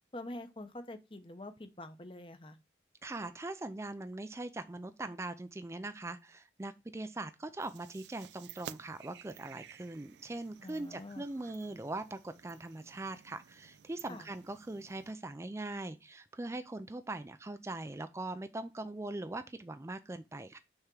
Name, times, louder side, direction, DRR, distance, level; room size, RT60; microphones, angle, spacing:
voice 1, 0.1-2.6 10.6-11.2 14.1-14.3, left 1 dB, 30° left, 0.8 m, -46 dB
voice 2, 3.0-20.6, right 2 dB, 15° right, 0.4 m, -41 dB
sound 1, 7.6-15.1, right 9 dB, 80° right, 0.4 m, -54 dB
6.3 x 3.6 x 6.0 m
head